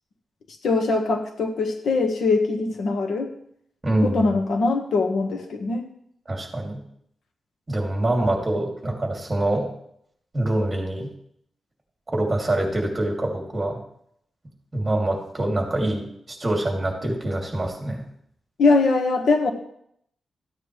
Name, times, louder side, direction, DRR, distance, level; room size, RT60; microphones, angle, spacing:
voice 1, 0.6-3.3 4.0-5.8 18.6-19.5, left 3 dB, 85° left, 4 dB, 1.4 m, -22 dB
voice 2, 3.8-4.2 6.3-6.8 7.7-9.7 10.3-11.1 12.1-13.8 14.7-18.0, right 1 dB, 20° right, 0 dB, 2.6 m, -25 dB
14.0 x 9.3 x 3.2 m, 0.71 s
wide cardioid pair, 130°, 0 cm